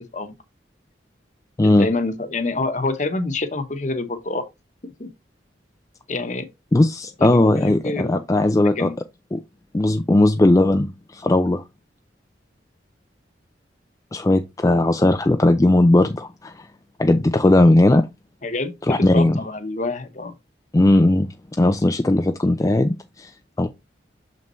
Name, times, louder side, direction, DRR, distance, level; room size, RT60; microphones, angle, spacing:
voice 1, 1.6-4.4 4.8-5.1 6.1-6.5 7.2-8.5 8.8-9.0 18.4-20.3, left 2 dB, 45° left, 1.1 m, -27 dB
voice 2, 6.7-8.9 9.3-9.4 9.7-11.6 14.1-16.7 17.0-18.1 18.9-19.4 20.7-21.3 21.6-23.3 23.6-23.7, left 1 dB, 20° left, 0.4 m, -17 dB
6.6 x 5.3 x 3.1 m
head